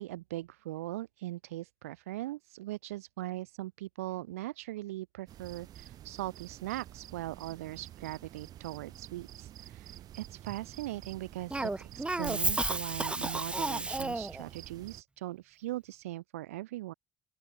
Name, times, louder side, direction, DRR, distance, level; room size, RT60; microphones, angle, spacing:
voice 1, 0.0-16.9, right 16 dB, 75° right, 0.9 m, -40 dB
sound 1, 5.3-15.0, right 12 dB, 55° right, 3.6 m, -49 dB
Cough, 11.5-14.4, right 2 dB, 15° right, 0.7 m, -32 dB
open air
figure-of-eight pair, 50°, 8 cm